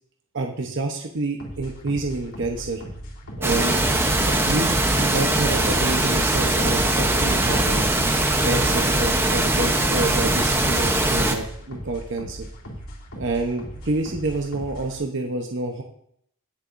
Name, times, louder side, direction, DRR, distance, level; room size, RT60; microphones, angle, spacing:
voice 1, 0.3-2.8 3.4-3.8 4.1-7.9 8.4-12.5 13.1-15.8, right 2 dB, 55° right, 2 dB, 0.9 m, -28 dB
sound 1, 1.4-15.0, equal, 75° left, 2.5 m, -38 dB
sound 2, 3.4-11.4, right 1 dB, 10° right, 0.8 m, -21 dB
17.0 x 6.8 x 2.6 m, 0.70 s
head